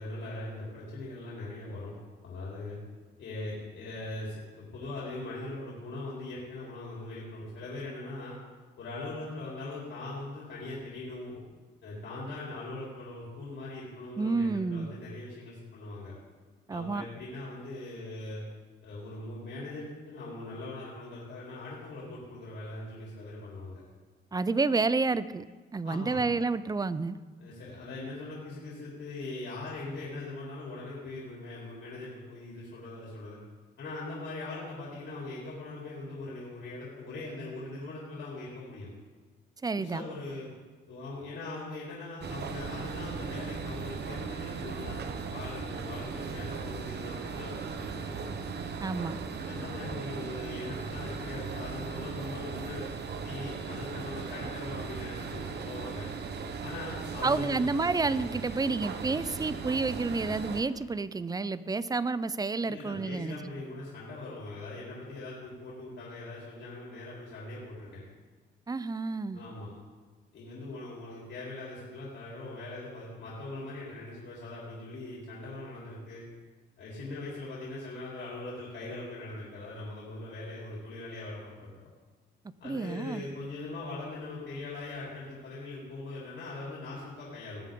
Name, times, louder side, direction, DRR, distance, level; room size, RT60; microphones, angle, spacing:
voice 1, 0.0-1.9 2.2-2.8 3.2-8.4 8.8-11.4 11.8-16.1 16.7-18.4 18.8-23.8 25.8-26.2 27.4-33.4 33.8-38.9 39.8-40.5 40.9-45.0 45.3-48.3 49.4-52.8 53.2-56.1 56.6-57.7 62.6-68.0 69.3-69.7 70.3-76.2 76.8-81.7 82.6-87.7, left 2 dB, 70° left, -6 dB, 3.9 m, -41 dB
voice 2, 14.2-14.9 16.7-17.1 24.3-25.4 25.7-27.2 39.6-40.0 48.8-49.2 57.2-63.4 68.7-69.4 82.6-83.2, right 3 dB, 20° right, 15 dB, 0.5 m, -30 dB
sound 1, 42.2-60.6, right 5 dB, 55° right, 1.1 m, -38 dB
20.0 x 7.3 x 3.8 m, 1.4 s
cardioid pair, 90°, 20 cm